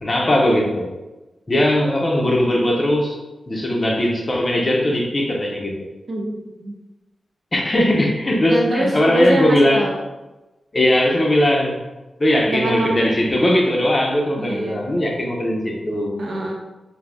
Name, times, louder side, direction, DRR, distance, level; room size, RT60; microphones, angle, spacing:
voice 1, 0.0-0.9 1.5-3.2 3.5-5.8 7.5-9.9 10.7-11.8 12.2-16.1, left 1 dB, 25° left, 0 dB, 0.6 m, -19 dB
voice 2, 6.1-6.7 8.4-10.0 12.5-13.1 14.4-14.8 16.2-16.5, right 1 dB, 50° right, -1 dB, 0.8 m, -25 dB
3.8 x 2.7 x 3.4 m, 1.1 s
wide cardioid pair, 165°, 0 cm